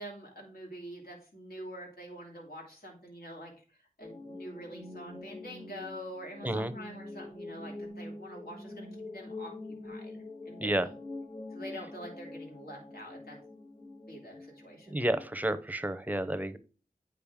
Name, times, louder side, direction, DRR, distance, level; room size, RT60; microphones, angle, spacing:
voice 1, 0.0-3.5 3.8-10.9 11.5-13.4 14.1-15.0, equal, 75° left, -1 dB, 2.7 m, -46 dB
sound 1, 4.0-15.3, left 2 dB, 50° left, 2.7 m, -45 dB
voice 2, 14.9-16.6, right 1 dB, 10° right, 10 dB, 0.7 m, -30 dB
8.5 x 5.1 x 3.6 m, 0.37 s
wide cardioid pair, 60°, 16 cm